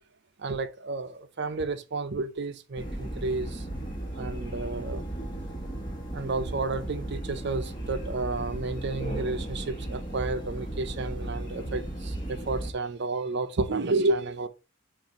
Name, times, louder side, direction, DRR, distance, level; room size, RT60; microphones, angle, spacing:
voice 1, 0.4-3.6 4.2-5.0 6.1-14.5, right 3 dB, 50° right, 0.6 m, -31 dB
sound 1, 2.8-12.7, right 1 dB, 20° left, 1.2 m, -35 dB
7.2 x 2.6 x 5.2 m
head